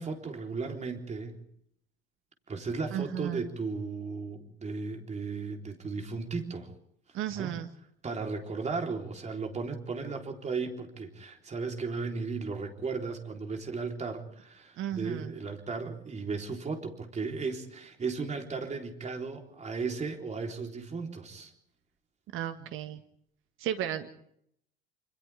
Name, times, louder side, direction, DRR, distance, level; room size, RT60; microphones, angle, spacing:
voice 1, 0.0-1.4 2.5-6.7 7.4-7.5 8.0-21.5, right 4 dB, 25° right, 3 dB, 3.6 m, -35 dB
voice 2, 2.9-3.5 7.1-7.7 14.8-15.3 22.3-23.0 23.6-24.1, right 11 dB, 45° right, 8 dB, 1.7 m, -34 dB
28.0 x 27.5 x 3.5 m, 0.71 s
figure-of-eight pair, 70°, 29 cm